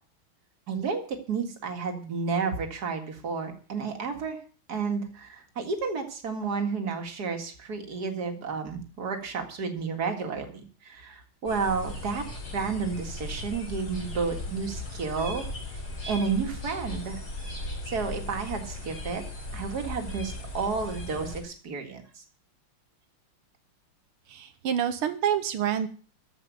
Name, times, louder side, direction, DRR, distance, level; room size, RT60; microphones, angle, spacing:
voice 1, 0.7-4.4 4.7-12.2 12.5-15.4 16.1-17.2 17.9-19.2 19.5-22.2, right 5 dB, 50° right, 5 dB, 2.4 m, -31 dB
sound 1, 11.5-21.4, left 2 dB, 65° left, 6.0 m, -37 dB
voice 2, 24.3-25.9, right 9 dB, 85° right, 9 dB, 1.9 m, -27 dB
14.5 x 5.7 x 9.1 m, 0.41 s
omnidirectional pair, 2.3 m